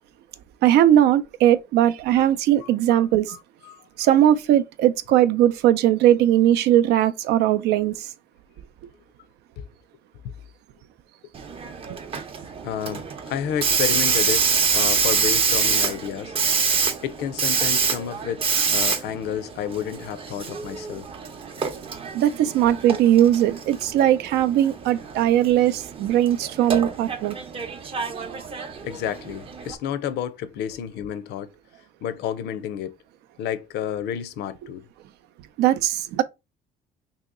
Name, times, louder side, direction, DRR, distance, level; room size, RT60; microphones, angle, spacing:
voice 1, 0.6-3.4 4.0-8.1 22.1-27.4 35.6-36.2, right 12 dB, 80° right, 0.4 m, -19 dB
voice 2, 2.6-3.9 9.6-9.7 10.2-10.3 12.6-16.4 17.0-21.1 28.8-31.5 32.0-33.0 33.4-34.8, left 9 dB, 80° left, 0.5 m, -31 dB
Hiss, 11.3-29.7, right 5 dB, 35° right, 0.6 m, -26 dB
2.9 x 2.8 x 3.6 m
cardioid pair, 110°, 17 cm